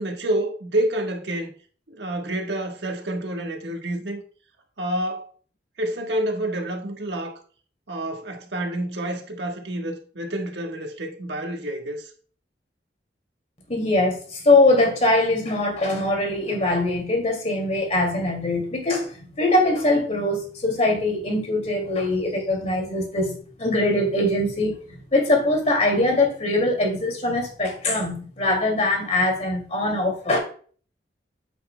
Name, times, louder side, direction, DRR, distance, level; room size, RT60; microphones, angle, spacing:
voice 1, 0.0-1.5 1.9-4.2 4.8-5.2 5.8-7.4 7.9-12.1, right 1 dB, 75° right, 1.4 m, -28 dB
voice 2, 13.7-19.1 19.4-30.4, left 2 dB, 40° left, 2.5 m, -22 dB
8.2 x 8.1 x 2.3 m
head